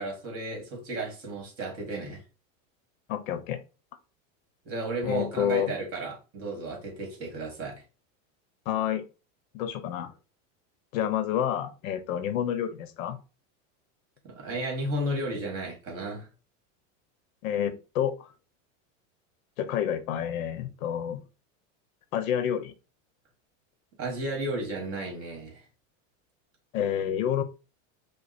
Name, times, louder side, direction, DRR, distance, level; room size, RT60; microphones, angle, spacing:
voice 1, 0.0-2.2 4.7-7.8 14.2-16.3 24.0-25.6, right 2 dB, 35° right, 2.3 m, -33 dB
voice 2, 3.1-3.6 5.0-5.7 8.7-9.1 9.5-10.1 10.9-13.2 17.4-18.3 19.6-21.2 22.1-22.7 26.7-27.4, left 10 dB, 80° left, 0.9 m, -29 dB
5.1 x 2.2 x 4.3 m
supercardioid pair, 140°, 40 cm